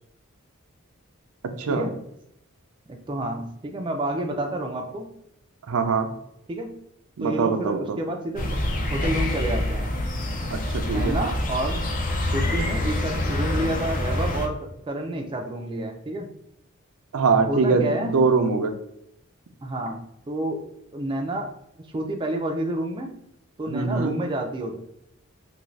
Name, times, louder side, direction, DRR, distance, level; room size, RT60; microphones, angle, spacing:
voice 1, 2.9-5.1 6.5-6.7 7.2-9.9 10.8-16.3 17.5-18.1 19.6-20.0 20.3-20.6 20.9-21.5 21.9-23.1 23.6-24.7, right 1 dB, 25° right, 3 dB, 0.4 m, -29 dB
voice 2, 5.7-6.1 7.2-8.0 10.5-11.2 17.1-18.7 23.7-24.1, right 4 dB, 90° right, 6 dB, 0.5 m, -23 dB
sound 1, 8.4-14.5, left 1 dB, 40° left, 0.5 m, -26 dB
2.7 x 2.5 x 3.1 m, 0.78 s
head